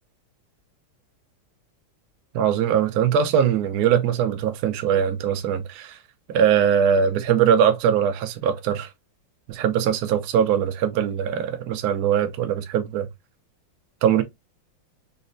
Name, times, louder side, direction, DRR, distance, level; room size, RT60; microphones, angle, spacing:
voice 1, 2.3-6.0 6.3-8.9 9.5-13.1 14.0-14.2, right 8 dB, 75° right, 0.9 m, -21 dB
4.1 x 2.1 x 2.5 m
omnidirectional pair, 2.2 m